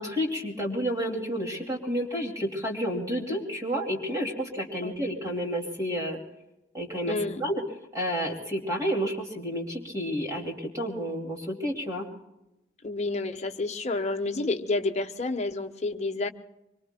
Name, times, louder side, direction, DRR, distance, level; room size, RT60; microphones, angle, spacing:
voice 1, 0.0-6.2 6.7-7.6 7.9-12.1, equal, 20° right, 0 dB, 2.5 m, -30 dB
voice 2, 7.1-7.4 12.8-16.3, left 3 dB, 40° left, 6 dB, 1.0 m, -29 dB
25.0 x 24.5 x 2.2 m, 0.94 s
head